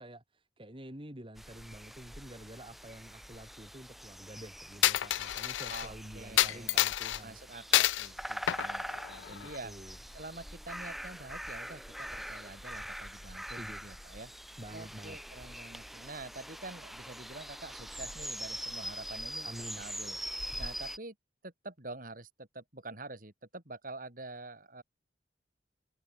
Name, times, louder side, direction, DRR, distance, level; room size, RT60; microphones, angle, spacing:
voice 1, 0.0-7.4 9.3-10.0 13.4-13.8 14.6-15.2 19.4-19.8, right 1 dB, 30° right, 3.4 m, -48 dB
sound 1, 1.4-21.0, equal, ahead, 2.3 m, -43 dB
Coin (dropping), 4.8-5.9 6.4-7.2 7.7-8.1 8.5-9.6, left 14 dB, 90° left, 0.4 m, -28 dB
voice 2, 5.7-6.8 7.2-9.7 10.1-14.3 14.7-20.2 20.6-21.1 21.4-24.8, right 2 dB, 50° right, 3.9 m, -47 dB
head